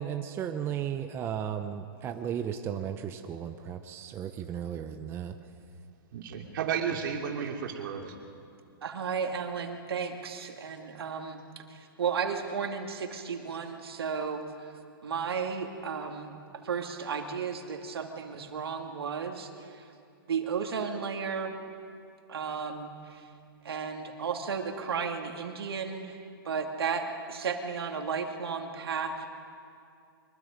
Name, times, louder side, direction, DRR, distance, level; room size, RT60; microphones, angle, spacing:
voice 1, 0.0-5.3, right 9 dB, 20° right, 7 dB, 0.8 m, -35 dB
voice 2, 6.1-8.1, right 7 dB, 60° right, 2 dB, 2.9 m, -32 dB
voice 3, 8.8-14.7 15.0-16.4 16.6-19.8 20.3-21.5 22.3-23.2 23.6-26.2 26.4-29.4, right 6 dB, 85° right, 4 dB, 2.4 m, -34 dB
24.0 x 22.0 x 5.3 m, 2.4 s
hypercardioid pair, 145°, 12 cm